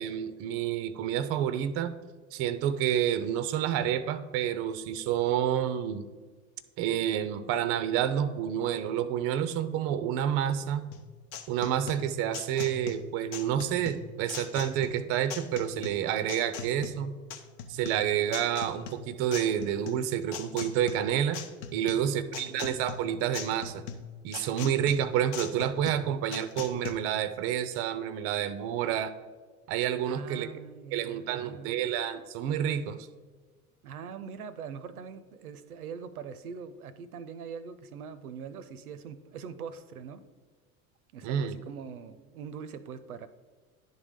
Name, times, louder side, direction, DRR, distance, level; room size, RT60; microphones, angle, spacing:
voice 1, 0.0-1.9 2.3-6.1 6.8-10.9 11.5-17.2 17.7-21.4 21.7-23.8 24.2-29.1 29.7-30.5 30.9-33.1 41.2-41.6, right 10 dB, 35° right, 13 dB, 0.4 m, -29 dB
sound 1, 10.9-26.9, left 7 dB, 50° left, 0.7 m, -41 dB
voice 2, 21.8-22.6 30.1-31.8 33.8-40.2 41.1-43.3, right 6 dB, 80° right, 14 dB, 0.6 m, -42 dB
10.5 x 3.7 x 3.6 m, 1.4 s
figure-of-eight pair, 80°, 44 cm